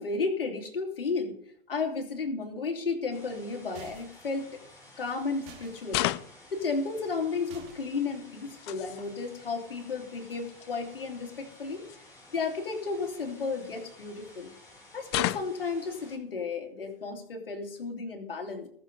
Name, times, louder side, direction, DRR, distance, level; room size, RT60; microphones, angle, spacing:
voice 1, 0.0-1.4 1.7-4.6 5.0-6.1 6.5-11.8 12.3-14.5 14.9-18.7, left 4 dB, 70° left, 3 dB, 3.1 m, -33 dB
sound 1, 3.1-16.2, left 1 dB, 10° left, 4.0 m, -54 dB
sound 2, 3.7-4.3 5.5-5.8 7.5-8.0, right 7 dB, 40° right, 2.7 m, -49 dB
sound 3, 4.2-4.4 5.9-6.5 8.3-9.1 10.2-10.3 10.5-10.7 11.9-12.0 13.0-14.0 15.1-15.7, left 17 dB, 30° left, 0.4 m, -33 dB
19.0 x 7.1 x 4.1 m, 0.63 s
figure-of-eight pair, 110°, 29 cm